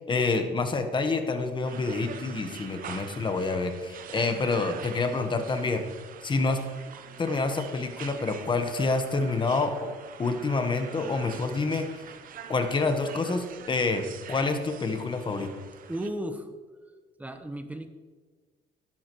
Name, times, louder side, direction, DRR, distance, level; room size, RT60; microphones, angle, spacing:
voice 1, 0.0-5.8 6.2-6.6 7.2-9.9 10.2-11.8 12.5-15.5, left 3 dB, 30° left, 7 dB, 1.2 m, -27 dB
sound 1, 1.6-16.1, right 8 dB, 55° right, 0.8 m, -44 dB
voice 2, 15.9-16.5 17.2-17.9, right 1 dB, 10° right, 7 dB, 1.0 m, -34 dB
11.5 x 11.5 x 3.1 m, 1.4 s
cardioid pair, 110°, 17 cm